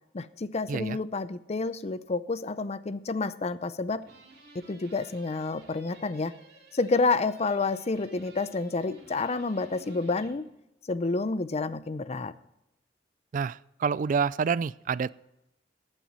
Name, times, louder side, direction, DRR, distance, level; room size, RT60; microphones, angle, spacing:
voice 1, 0.1-4.0 4.5-6.3 6.7-10.4 10.9-12.3, left 3 dB, 40° left, 15 dB, 0.5 m, -29 dB
sound 1, 4.0-10.4, right 2 dB, 70° right, 3.1 m, -54 dB
voice 2, 13.3-15.1, right 6 dB, 50° right, 20 dB, 0.3 m, -28 dB
15.0 x 9.0 x 4.1 m, 0.90 s
head